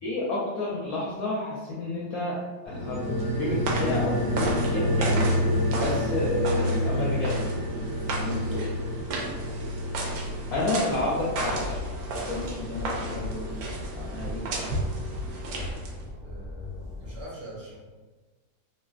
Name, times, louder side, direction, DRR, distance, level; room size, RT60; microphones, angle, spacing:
voice 1, 0.0-2.4 2.6-5.3 5.7-7.5 8.1-8.7 10.5-11.8 12.3-13.6 13.9-14.7, left 2 dB, 75° left, -6 dB, 0.8 m, -31 dB
sound 1, 2.7-13.5 13.8-13.9, equal, 25° right, 0.5 m, -29 dB
sound 2, 2.8-16.1, right 2 dB, 85° right, 1.3 m, -34 dB
Train, 10.9-17.2, left 2 dB, 30° left, 0.4 m, -41 dB
voice 2, 16.2-17.8, equal, 60° right, -7 dB, 1.3 m, -42 dB
3.2 x 2.5 x 2.3 m, 1.3 s
omnidirectional pair, 2.1 m